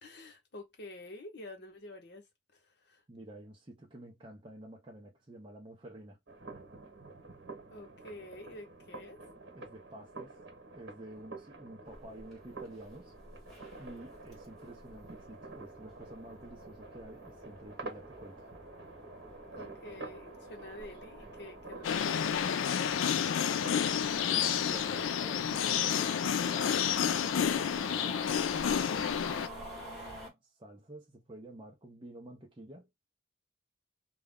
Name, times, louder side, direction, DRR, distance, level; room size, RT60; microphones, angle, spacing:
voice 1, 0.0-3.0 7.7-9.2 11.1-11.2 11.8-11.9 19.5-22.9, left 1 dB, 60° left, 1.0 m, -49 dB
voice 2, 3.1-6.2 9.5-10.4 10.7-13.1 13.8-18.5 23.2-28.2 28.7-32.9, right 1 dB, 25° right, 0.6 m, -50 dB
sound 1, 6.3-25.1, right 3 dB, 70° right, 1.1 m, -49 dB
sound 2, 11.9-30.3, equal, ahead, 1.1 m, -50 dB
sound 3, 21.8-29.5, left 8 dB, 90° left, 0.4 m, -30 dB
2.3 x 2.1 x 3.5 m
head